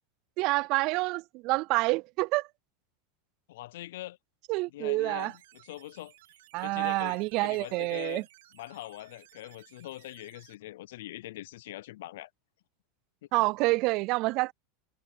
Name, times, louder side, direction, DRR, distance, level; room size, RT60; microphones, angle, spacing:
voice 1, 0.4-2.5 4.5-5.3 6.5-8.2 13.3-14.5, right 23 dB, 50° right, 0.3 m, -28 dB
voice 2, 3.5-4.2 4.7-6.1 6.6-8.3 8.5-12.3 13.4-13.5, left 16 dB, 80° left, 0.4 m, -43 dB
sound 1, 5.2-10.5, right 16 dB, 80° right, 2.2 m, -59 dB
supercardioid pair, 130°, 0 cm